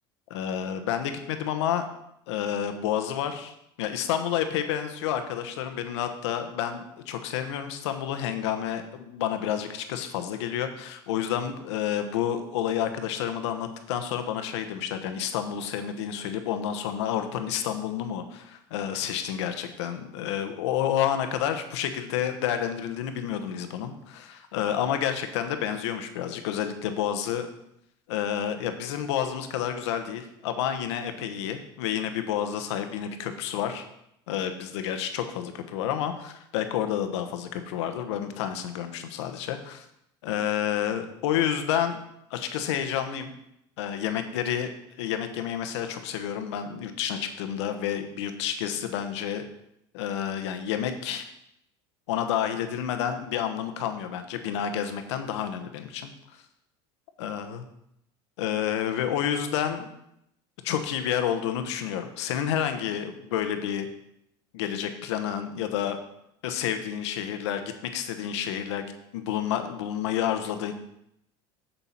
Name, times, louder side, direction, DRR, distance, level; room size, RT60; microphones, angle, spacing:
voice 1, 0.3-1.9 2.3-27.5 28.1-33.8 34.3-39.9 40.2-42.0 42.3-43.3 43.8-44.7 45.0-49.4 49.9-51.3 52.1-56.1 57.2-57.6 58.4-59.9 60.6-63.9 64.5-66.0 66.4-70.7, left 9 dB, 85° left, 8 dB, 1.0 m, -29 dB
7.2 x 6.9 x 4.4 m, 0.79 s
supercardioid pair, 100°, 14 cm